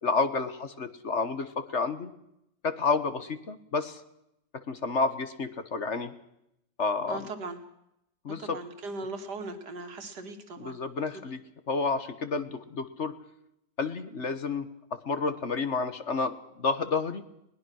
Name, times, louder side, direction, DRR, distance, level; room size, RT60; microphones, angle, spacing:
voice 1, 0.0-2.1 2.6-4.0 4.7-6.1 6.8-7.3 8.2-8.6 10.6-11.4 11.7-13.2 13.8-14.7 15.0-17.2, left 4 dB, 45° left, 11 dB, 1.6 m, -30 dB
voice 2, 7.1-7.6 8.4-10.8, right 3 dB, 65° right, 6 dB, 2.8 m, -38 dB
21.5 x 20.0 x 6.4 m, 0.81 s
omnidirectional pair, 1.9 m